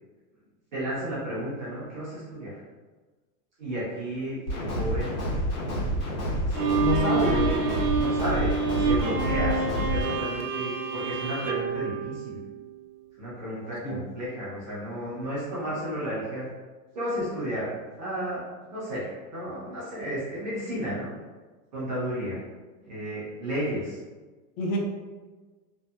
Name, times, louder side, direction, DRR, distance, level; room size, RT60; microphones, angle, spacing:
voice 1, 0.7-2.6 3.6-5.2 6.5-7.6 7.9-12.4 13.2-16.5 16.9-17.7 18.0-21.1 21.7-22.4 22.8-24.0, equal, 30° right, -9 dB, 0.4 m, -33 dB
sound 1, 4.5-10.1, equal, 75° left, 1.2 m, -29 dB
Bowed string instrument, 6.5-12.8, right 4 dB, 80° right, 0.6 m, -28 dB
voice 2, 6.8-7.4 13.8-14.0 24.6-24.8, left 2 dB, 60° left, 1 dB, 0.5 m, -27 dB
2.7 x 2.0 x 2.2 m, 1.3 s
supercardioid pair, 175°, 48 cm